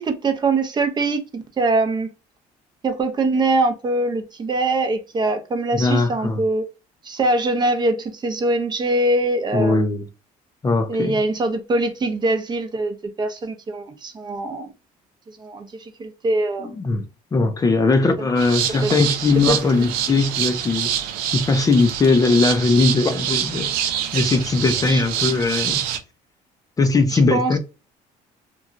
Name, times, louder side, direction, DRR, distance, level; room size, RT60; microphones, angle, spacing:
voice 1, 0.0-2.1 2.8-6.7 7.0-9.9 10.9-14.7 15.4-16.8 18.2-18.3 18.8-18.9 19.5-19.6 22.3-22.4 24.9-25.0 27.1-27.6, right 2 dB, 30° right, 0.6 m, -23 dB
voice 2, 5.7-6.4 9.5-10.0 10.6-11.1 16.8-17.0 17.3-20.9 21.3-25.8 26.8-27.6, left 3 dB, 25° left, 0.5 m, -19 dB
sound 1, 18.4-26.0, right 9 dB, 90° right, 0.5 m, -26 dB
3.0 x 2.3 x 2.5 m
cardioid pair, 115°, 15 cm